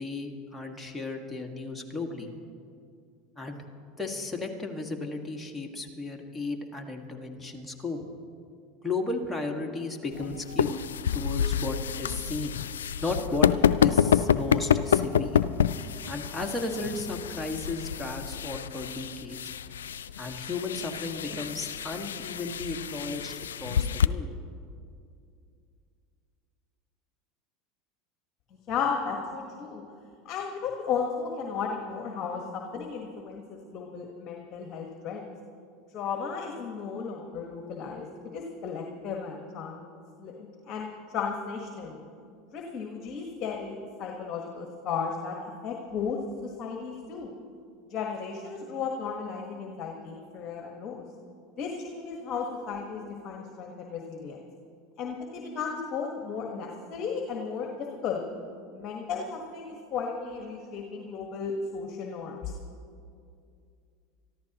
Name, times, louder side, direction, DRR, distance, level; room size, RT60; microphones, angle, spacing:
voice 1, 0.0-2.3 3.4-3.6 4.0-8.0 8.8-10.9 11.1-12.5 13.0-13.5 13.8-15.4 16.0-19.4 20.2-24.3, left 3 dB, 10° left, 1 dB, 1.8 m, -34 dB
sound 1, 10.1-24.1, left 8 dB, 90° left, 0.3 m, -28 dB
voice 2, 28.7-29.8 30.2-35.3 35.9-38.1 38.3-39.8 40.2-42.0 42.5-45.4 45.6-47.3 47.9-51.0 51.6-54.4 55.0-58.2 58.7-62.5, left 6 dB, 45° left, 1 dB, 1.5 m, -34 dB
24.0 x 14.0 x 3.0 m, 2.4 s
hypercardioid pair, 95°, 0 cm